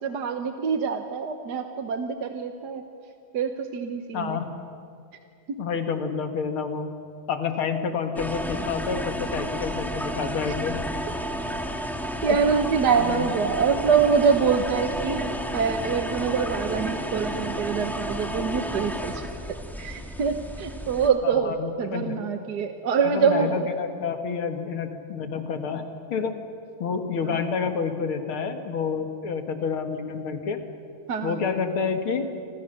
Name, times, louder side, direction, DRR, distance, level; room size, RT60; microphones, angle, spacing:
voice 1, 0.0-2.8 3.3-4.4 5.5-5.6 12.2-19.2 19.8-23.6 27.2-27.4 31.1-31.4, right 6 dB, 60° right, 6 dB, 1.5 m, -25 dB
voice 2, 4.1-4.5 5.6-6.9 7.3-10.8 13.0-13.3 21.2-22.2 23.0-26.4 26.8-30.6 31.2-32.3, left 5 dB, 85° left, 6 dB, 2.6 m, -29 dB
sound 1, 8.2-21.1, equal, ahead, 1.4 m, -32 dB
28.5 x 25.5 x 6.6 m, 2.4 s
omnidirectional pair, 2.3 m